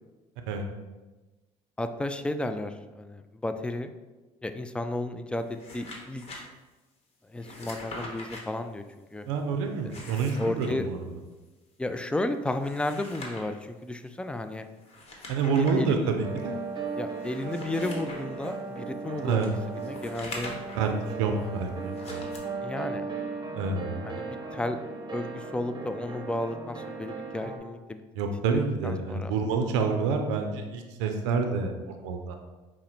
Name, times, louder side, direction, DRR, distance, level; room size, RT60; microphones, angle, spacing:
voice 1, 1.8-3.9 4.4-6.5 7.2-9.3 10.4-10.9 11.8-14.7 15.6-16.2 16.9-20.5 21.2-21.5 22.6-23.1 24.0-24.8 25.1-28.0 28.8-29.3, left 2 dB, 5° left, 8 dB, 0.3 m, -33 dB
sound 1, 5.4-6.4 7.4-8.4 9.7-10.7 12.5-13.6 14.8-15.8 16.3-16.4 17.1-18.5 19.4-20.9 21.9-22.4, left 2 dB, 45° left, 1.1 m, -43 dB
voice 2, 9.3-11.0 15.3-16.6 19.2-19.5 20.7-22.3 23.5-24.1 28.2-32.3, right 5 dB, 85° right, 5 dB, 0.5 m, -28 dB
sound 2, 16.2-27.6, right 4 dB, 30° right, 0.8 m, -37 dB
4.8 x 2.1 x 4.4 m, 1.2 s
supercardioid pair, 70°, 15 cm